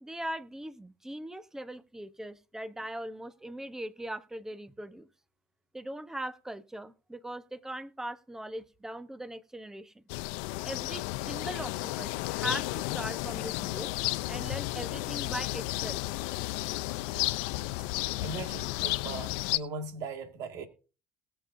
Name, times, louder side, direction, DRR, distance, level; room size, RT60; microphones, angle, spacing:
voice 1, 0.0-5.1 5.7-10.0 10.6-13.9 14.3-16.0, right 1 dB, 10° right, 1.0 m, -40 dB
sound 1, 10.1-19.6, left 20 dB, 80° left, 0.5 m, -33 dB
voice 2, 18.2-20.7, right 3 dB, 65° right, 2.1 m, -39 dB
20.0 x 6.9 x 2.7 m
supercardioid pair, 90°, 6 cm